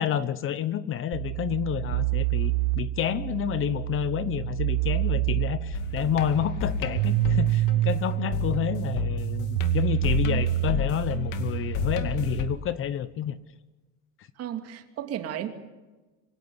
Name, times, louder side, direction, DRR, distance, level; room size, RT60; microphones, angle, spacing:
voice 1, 0.0-13.4, left 10 dB, 40° left, 15 dB, 1.0 m, -29 dB
sound 1, 1.1-12.6, right 16 dB, 80° right, 0.9 m, -28 dB
sound 2, 5.7-12.4, left 7 dB, 60° left, 2.3 m, -32 dB
voice 2, 14.4-15.5, right 10 dB, 45° right, 6 dB, 2.7 m, -33 dB
25.0 x 17.0 x 9.7 m, 1.2 s
cardioid pair, 140°, 34 cm